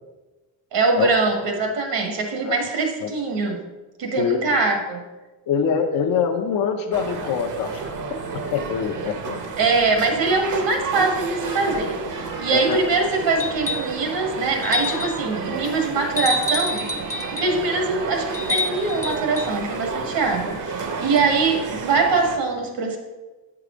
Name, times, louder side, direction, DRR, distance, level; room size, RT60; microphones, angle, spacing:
voice 1, 0.7-3.6 4.0-5.0 9.6-16.8 17.3-23.0, right 3 dB, 75° right, 2 dB, 1.7 m, -23 dB
voice 2, 5.5-8.0 8.5-9.4 12.5-12.8, left 7 dB, 50° left, 3 dB, 0.7 m, -24 dB
sound 1, 6.9-22.4, right 4 dB, 45° right, 0.9 m, -31 dB
sound 2, 13.4-14.0 14.6-15.2 16.2-17.5 18.3-19.5 21.2-21.3, left 2 dB, 5° left, 0.6 m, -27 dB
8.2 x 4.8 x 5.0 m, 1.2 s
cardioid pair, 140°, 44 cm